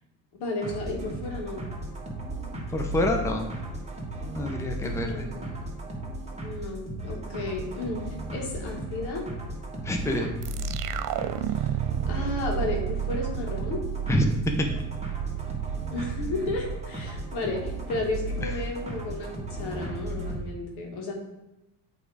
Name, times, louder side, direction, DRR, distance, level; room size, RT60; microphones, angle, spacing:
voice 1, 0.3-1.6 4.9-5.5 6.4-9.2 11.5-11.7 12.1-13.8 15.9-21.1, left 2 dB, 80° left, 0 dB, 1.9 m, -33 dB
sound 1, 0.6-20.4, right 1 dB, 15° right, 1.5 m, -35 dB
voice 2, 2.7-3.5 4.3-5.3 9.8-10.3 14.1-14.3 14.6-14.7 18.4-18.5, left 1 dB, 5° left, 3 dB, 0.7 m, -27 dB
sound 2, 10.4-17.7, right 13 dB, 60° right, 0.5 m, -32 dB
7.7 x 3.5 x 4.8 m, 0.97 s
cardioid pair, 115°, 39 cm